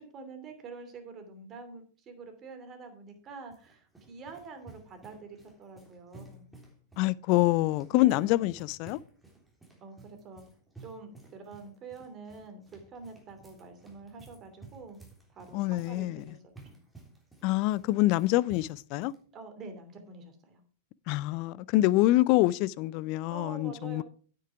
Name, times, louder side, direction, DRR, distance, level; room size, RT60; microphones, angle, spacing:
voice 1, 0.0-6.5 7.9-8.5 9.8-10.4 10.8-15.0 15.3-16.4 16.7-16.8 19.3-20.6 23.3-24.0, right 4 dB, 30° right, 2.8 m, -46 dB
sound 1, 3.1-19.2, right 3 dB, ahead, 3.6 m, -55 dB
voice 2, 7.0-9.0 15.5-16.2 17.4-19.1 21.1-24.0, left 17 dB, 45° left, 0.4 m, -26 dB
9.3 x 8.6 x 4.7 m
figure-of-eight pair, 100°, 0 cm